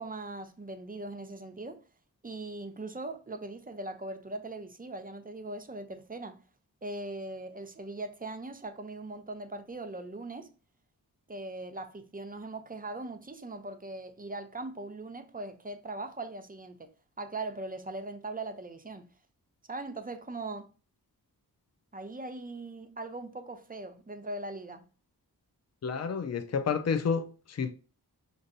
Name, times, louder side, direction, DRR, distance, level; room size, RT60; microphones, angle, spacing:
voice 1, 0.0-1.8 2.2-6.4 6.8-10.5 11.3-16.9 17.2-19.0 19.7-20.7 21.9-24.8, right 2 dB, 25° right, 0.6 m, -40 dB
voice 2, 25.8-27.7, left 6 dB, 45° left, 0.5 m, -30 dB
5.1 x 2.6 x 2.7 m
cardioid pair, 55°, 39 cm